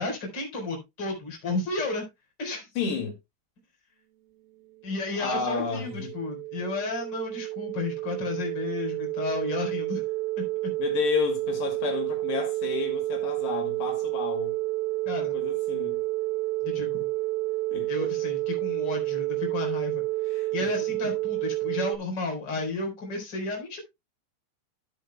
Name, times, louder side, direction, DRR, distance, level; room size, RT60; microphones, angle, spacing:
voice 1, 0.0-2.0 2.4-2.7 4.8-10.0 10.4-10.7 15.0-15.3 16.6-17.1 17.9-23.8, left 3 dB, 25° left, 4.5 m, -32 dB
voice 2, 2.8-3.1 5.2-6.1 10.8-14.5 15.3-16.0 17.7-18.1 20.3-20.7 21.0-21.1, left 5 dB, 70° left, 4.3 m, -31 dB
sound 1, 4.9-21.9, right 19 dB, 70° right, 2.1 m, -30 dB
14.5 x 8.1 x 2.2 m
omnidirectional pair, 5.2 m